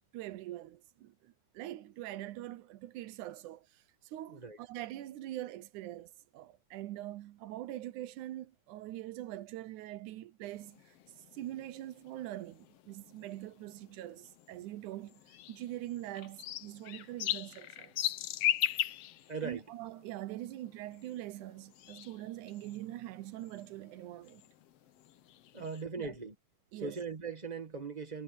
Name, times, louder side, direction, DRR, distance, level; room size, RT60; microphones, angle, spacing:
voice 1, 0.1-11.0 11.3-17.9 19.4-24.4 25.6-25.7 26.0-26.2 26.7-27.0, right 14 dB, 80° right, 2.2 m, -43 dB
sound 1, 10.5-25.8, left 13 dB, 75° left, 1.5 m, -40 dB
voice 2, 19.3-19.6 25.5-26.3 26.7-28.2, right 4 dB, 20° right, 1.3 m, -39 dB
omnidirectional pair, 3.5 m